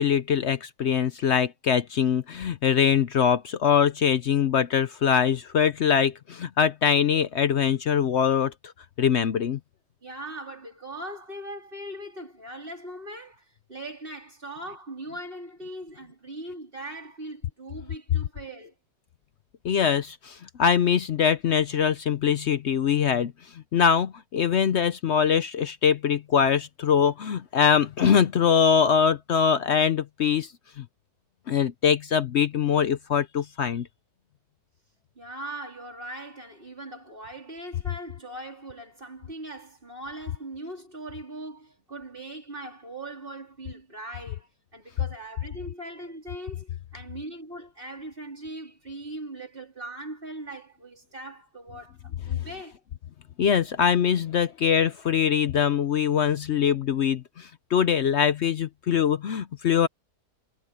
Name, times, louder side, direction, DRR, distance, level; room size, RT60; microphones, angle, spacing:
voice 1, 0.0-8.5 9.0-9.6 19.6-23.3 23.7-30.5 30.8-30.9 31.5-33.9 53.4-59.9, left 7 dB, 65° left, 0.7 m, -23 dB
voice 2, 10.0-18.7 35.2-52.8, right 1 dB, 30° right, 3.9 m, -40 dB
omnidirectional pair, 1.8 m